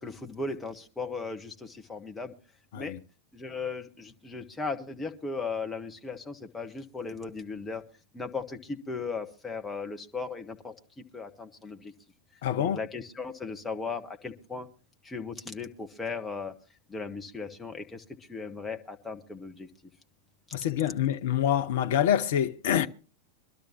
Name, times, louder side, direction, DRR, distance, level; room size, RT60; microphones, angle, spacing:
voice 1, 0.0-2.3 2.7-2.9 3.3-7.8 8.1-11.9 12.6-14.7 15.0-16.5 16.9-19.7, left 4 dB, 10° left, 1.3 m, -37 dB
voice 2, 12.4-12.8 20.5-22.9, left 10 dB, 55° left, 0.6 m, -26 dB
23.0 x 12.5 x 2.9 m
figure-of-eight pair, 90°, 0 cm